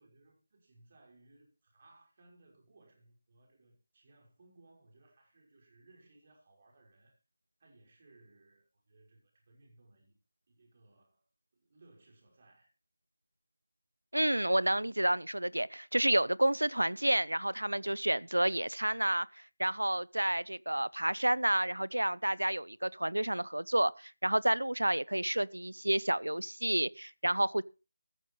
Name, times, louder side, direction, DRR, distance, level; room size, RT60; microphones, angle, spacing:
voice 1, 0.0-7.2 7.6-10.2 10.5-11.2 11.5-12.7, right 2 dB, 35° right, 5.6 m, -63 dB
voice 2, 14.1-19.3 19.6-27.6, right 1 dB, 75° right, 0.7 m, -30 dB
14.5 x 14.0 x 3.3 m
figure-of-eight pair, 160°, 0 cm